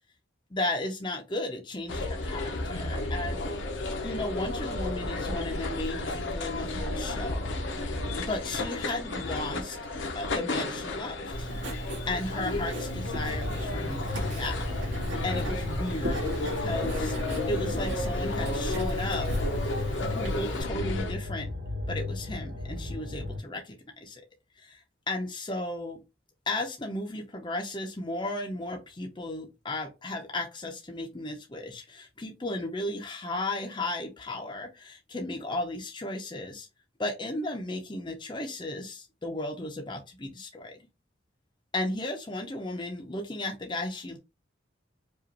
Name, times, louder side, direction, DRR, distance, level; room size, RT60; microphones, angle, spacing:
voice 1, 0.5-3.5 4.0-7.6 8.3-9.8 10.1-11.5 12.1-14.6 15.2-17.2 17.5-19.3 20.0-21.5 21.9-24.2 24.6-26.0 26.5-36.7 37.0-40.8 41.7-44.2, left 2 dB, 25° left, 0.6 m, -35 dB
sound 1, 1.9-21.1, left 2 dB, 75° left, 0.8 m, -33 dB
Writing, 11.3-20.6, right 1 dB, 75° right, 1.6 m, -36 dB
sound 2, 12.9-23.4, left 2 dB, 50° right, 1.4 m, -36 dB
5.0 x 2.4 x 2.8 m
head